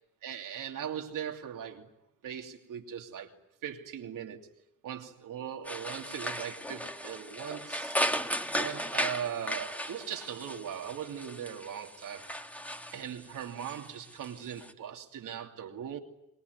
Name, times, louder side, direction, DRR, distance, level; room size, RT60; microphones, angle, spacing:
voice 1, 0.2-1.9 2.2-3.3 3.6-4.5 4.8-8.0 8.5-12.3 12.9-16.0, right 9 dB, 90° right, 2.9 m, -39 dB
sound 1, 5.7-14.7, equal, 5° left, 2.4 m, -36 dB
27.0 x 21.5 x 9.6 m
cardioid pair, 60°, 31 cm